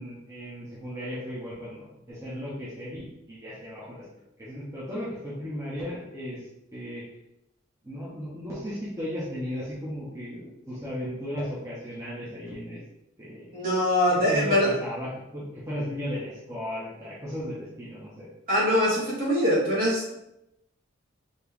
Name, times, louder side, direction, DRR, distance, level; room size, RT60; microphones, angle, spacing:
voice 1, 0.0-4.0 4.4-6.4 6.7-7.0 7.8-12.8 13.2-13.5 14.1-18.3, equal, 15° right, -8 dB, 1.0 m, -35 dB
voice 2, 13.5-14.7 18.5-20.1, equal, 45° right, -5 dB, 1.6 m, -23 dB
4.3 x 3.0 x 3.5 m, 0.84 s
head